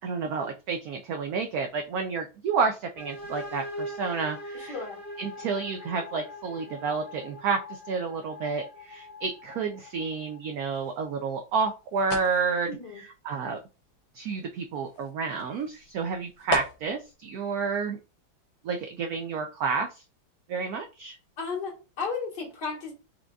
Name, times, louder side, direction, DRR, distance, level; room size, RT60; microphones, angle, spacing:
voice 1, 0.0-4.8 5.2-12.7 13.2-13.6 14.1-18.0 18.6-20.0 20.5-21.2, right 5 dB, 85° right, 0.8 m, -30 dB
sound 1, 3.0-10.6, left 1 dB, 35° left, 2.7 m, -41 dB
voice 2, 4.5-5.0 12.7-13.0 21.4-22.9, left 4 dB, 60° left, 2.2 m, -34 dB
sound 2, 10.7-17.1, left 3 dB, 90° left, 1.6 m, -39 dB
4.9 x 3.7 x 2.3 m
omnidirectional pair, 2.1 m